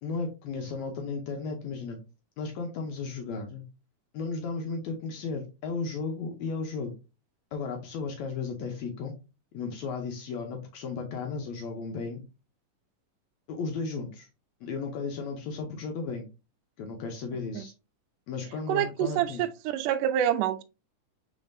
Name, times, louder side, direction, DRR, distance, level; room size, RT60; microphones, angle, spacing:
voice 1, 0.0-2.0 2.4-3.6 4.1-6.9 7.5-9.1 9.5-12.2 13.5-14.3 14.6-16.3 16.8-17.7 18.3-19.4, left 4 dB, 75° left, 1.8 m, -34 dB
voice 2, 18.7-20.6, right 11 dB, 80° right, 2.0 m, -27 dB
5.3 x 3.9 x 2.6 m
omnidirectional pair, 3.8 m